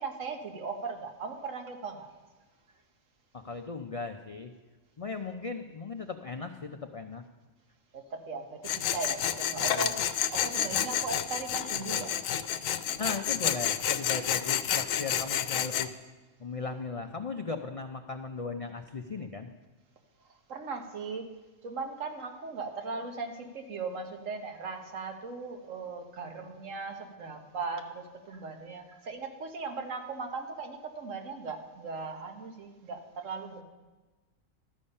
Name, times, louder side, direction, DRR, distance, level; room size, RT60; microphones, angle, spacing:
voice 1, 0.0-2.1 7.9-12.2 20.5-21.3 21.6-33.6, right 4 dB, 75° right, 4 dB, 1.5 m, -38 dB
voice 2, 3.3-4.5 5.0-7.2 9.5-10.0 13.0-15.9 16.4-19.5, left 4 dB, 60° left, 5 dB, 0.3 m, -37 dB
Tools, 8.6-15.9, left 10 dB, 85° left, 1.0 m, -30 dB
13.0 x 8.6 x 5.4 m, 1.2 s
omnidirectional pair, 1.4 m